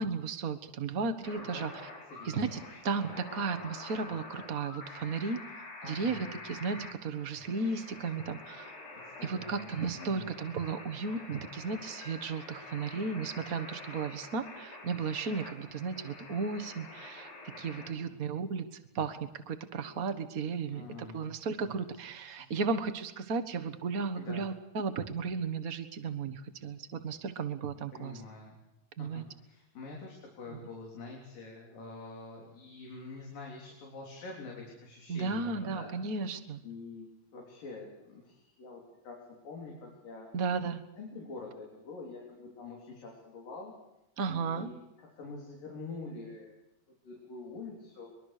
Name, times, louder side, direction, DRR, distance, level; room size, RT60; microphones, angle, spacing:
voice 1, 0.0-1.7 2.2-5.4 5.8-6.2 6.4-8.7 9.2-18.6 18.9-19.2 19.5-20.9 21.1-28.2 29.0-29.2 35.1-36.6 40.3-40.8 44.2-44.7, right 4 dB, 60° right, 8 dB, 0.9 m, -34 dB
sound 1, 1.2-17.9, left 2 dB, 60° left, 5.7 m, -47 dB
voice 2, 1.4-1.7 2.1-2.4 2.7-2.8 5.8-6.2 8.9-9.7 10.0-10.3 18.1-18.2 20.7-21.3 21.6-21.8 22.1-22.4 24.2-24.5 27.9-28.6 29.0-35.9 36.6-37.1 37.3-39.2 39.4-40.3 41.0-43.7 44.3-46.6 47.0-48.1, left 3 dB, 80° left, -1 dB, 5.3 m, -46 dB
23.0 x 23.0 x 6.7 m, 0.88 s
omnidirectional pair, 3.9 m